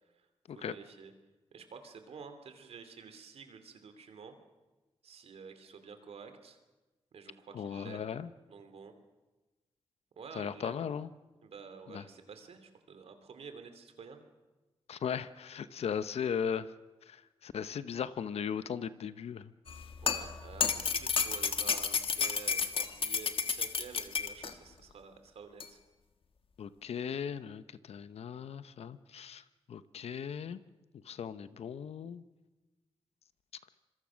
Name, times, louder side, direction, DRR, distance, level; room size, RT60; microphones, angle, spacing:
voice 1, 0.5-1.1 1.5-4.4 5.0-6.6 7.1-8.0 8.5-8.9 10.2-10.8 11.4-14.2 20.0-25.8, right 5 dB, 80° right, 8 dB, 2.9 m, -50 dB
voice 2, 7.5-8.3 10.3-11.1 11.9-12.0 14.9-16.7 17.1-19.5 26.6-30.6 31.0-32.2, left 7 dB, 80° left, 14 dB, 0.9 m, -37 dB
sound 1, 19.7-24.5 25.6-25.7, left 6 dB, 60° left, 1.5 m, -32 dB
26.0 x 22.5 x 6.4 m, 1.1 s
cardioid pair, 70°, 10 cm